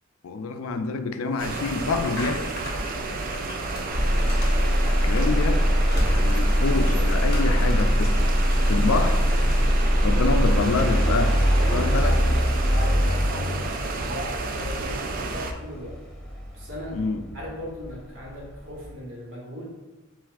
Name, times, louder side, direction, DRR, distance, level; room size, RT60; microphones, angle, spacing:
voice 1, 0.2-2.5 5.0-5.6 6.0-8.3 8.7-9.2 10.0-11.4 11.7-12.2 16.9-17.2, left 4 dB, 80° left, 8 dB, 0.4 m, -27 dB
sound 1, 1.3-9.8, left 2 dB, 50° left, 1.0 m, -41 dB
sound 2, 1.4-15.5, right 3 dB, 40° right, 0.4 m, -31 dB
Motor vehicle (road), 3.9-17.9 18.4-18.9, equal, 5° left, 0.7 m, -22 dB
voice 2, 11.6-16.0 16.5-17.0 17.3-19.6, left 1 dB, 60° right, -3 dB, 1.3 m, -38 dB
7.3 x 2.5 x 2.4 m, 1.1 s
head